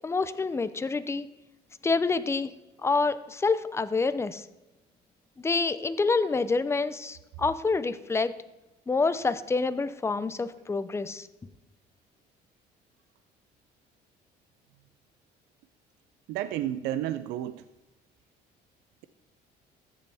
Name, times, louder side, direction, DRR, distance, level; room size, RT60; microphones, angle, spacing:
voice 1, 0.0-1.3 1.8-2.5 2.8-4.5 5.4-8.3 8.9-11.3, left 4 dB, 15° left, 13 dB, 0.5 m, -27 dB
voice 2, 16.3-17.6, right 12 dB, 90° right, 12 dB, 0.5 m, -31 dB
14.0 x 6.9 x 3.4 m, 1.0 s
cardioid pair, 110°, 17 cm